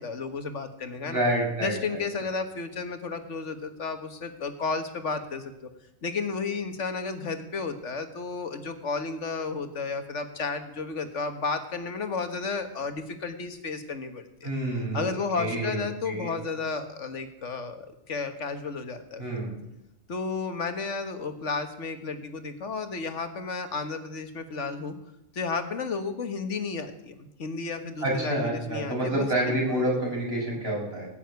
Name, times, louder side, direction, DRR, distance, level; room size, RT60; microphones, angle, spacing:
voice 1, 0.0-1.2 1.6-5.7 6.0-14.5 14.9-19.2 20.1-25.0 25.3-29.8, left 4 dB, 60° left, 8 dB, 1.7 m, -33 dB
voice 2, 1.0-2.0 14.4-15.1 15.3-16.3 19.2-19.5 28.0-31.1, right 1 dB, 45° right, -2 dB, 6.4 m, -28 dB
18.5 x 7.1 x 9.4 m, 0.85 s
omnidirectional pair, 1.4 m